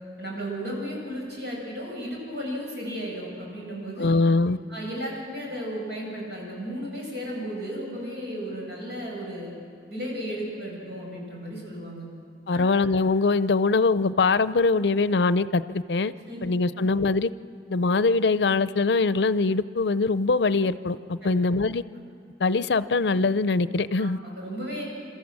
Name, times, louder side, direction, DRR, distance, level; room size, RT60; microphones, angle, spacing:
voice 1, 0.2-4.1 4.7-9.5 9.9-12.1 12.5-12.7 16.3-16.4 16.8-16.9 21.2-21.3 24.0-24.8, equal, 70° right, -3 dB, 7.4 m, -34 dB
voice 2, 4.0-4.6 12.5-16.1 16.4-17.3 17.7-21.8 22.4-24.2, left 3 dB, 75° left, 15 dB, 0.5 m, -22 dB
28.0 x 13.5 x 7.4 m, 2.4 s
head